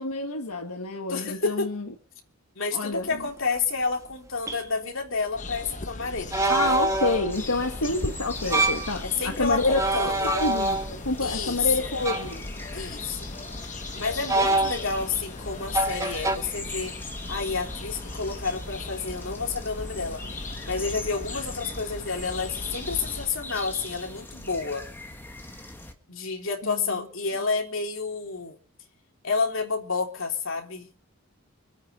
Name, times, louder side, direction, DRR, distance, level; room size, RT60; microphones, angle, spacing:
voice 1, 0.0-1.9 2.7-3.2 6.5-12.5 26.6-27.0, left 2 dB, 80° left, 1.7 m, -28 dB
voice 2, 1.1-1.7 2.6-6.8 9.0-10.3 11.2-11.9 12.7-13.3 13.9-16.9 17.3-20.2 20.7-24.9 26.1-28.6 29.2-30.9, left 4 dB, 60° left, 3.5 m, -30 dB
sound 1, 3.5-3.6 4.5-4.6 6.3-7.4 8.4-8.9 9.7-11.1 12.0-12.4 14.3-15.1 15.7-16.4, right 2 dB, 15° right, 1.6 m, -25 dB
sound 2, 5.3-23.3, left 2 dB, 35° left, 1.1 m, -38 dB
sound 3, 7.3-25.9, left 2 dB, 10° left, 1.9 m, -41 dB
25.5 x 9.1 x 5.5 m
head